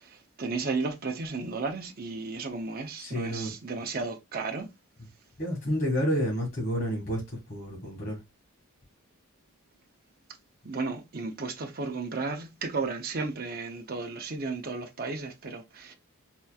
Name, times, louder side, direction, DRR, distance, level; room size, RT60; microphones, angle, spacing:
voice 1, 0.4-4.7 10.6-15.9, right 4 dB, 45° right, 0.7 m, -33 dB
voice 2, 3.0-3.5 5.4-8.2, equal, 45° left, 2.0 m, -30 dB
4.2 x 3.0 x 2.3 m
head